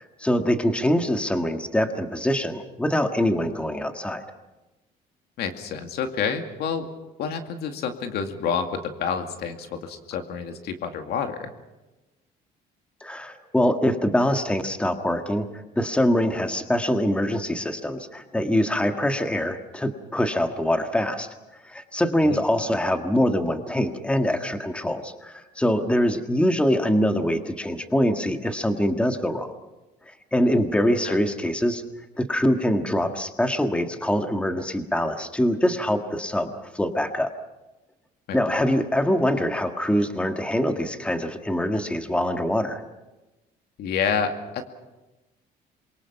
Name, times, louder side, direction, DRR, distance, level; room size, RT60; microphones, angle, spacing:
voice 1, 0.0-4.2 13.0-21.3 21.6-29.5 30.3-31.8 32.2-37.3 38.3-42.8, equal, 5° left, 6 dB, 1.7 m, -24 dB
voice 2, 5.4-6.9 7.2-11.5 22.2-22.4 31.0-31.2 38.3-38.4 43.8-44.6, left 6 dB, 70° left, 6 dB, 2.3 m, -28 dB
27.0 x 23.5 x 5.9 m, 1.1 s
cardioid pair, 110°, 17 cm